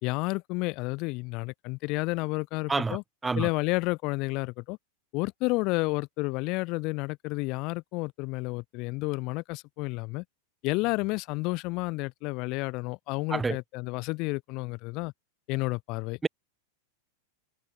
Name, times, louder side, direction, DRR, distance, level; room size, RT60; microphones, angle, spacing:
voice 1, 0.0-3.0 3.3-4.8 5.1-10.2 10.6-15.1 15.5-16.2, left 25 dB, 40° left, 3.4 m, -31 dB
voice 2, 2.7-3.0 3.2-3.5 13.3-13.6 16.2-16.3, right 4 dB, 10° right, 0.8 m, -27 dB
figure-of-eight pair, 90°, 0 cm